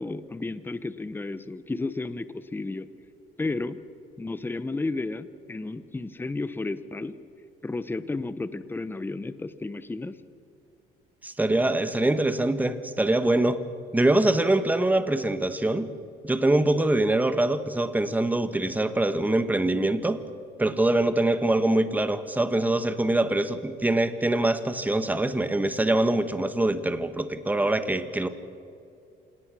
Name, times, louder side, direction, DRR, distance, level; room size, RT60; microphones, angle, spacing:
voice 1, 0.0-2.9 3.4-3.8 4.2-7.2 7.6-10.2, left 3 dB, 10° left, 14 dB, 0.9 m, -32 dB
voice 2, 11.2-13.6 13.9-15.9 16.2-20.2 20.6-28.3, right 1 dB, 10° right, 11 dB, 1.3 m, -24 dB
27.5 x 18.5 x 6.2 m, 2.4 s
cardioid pair, 110°, 17 cm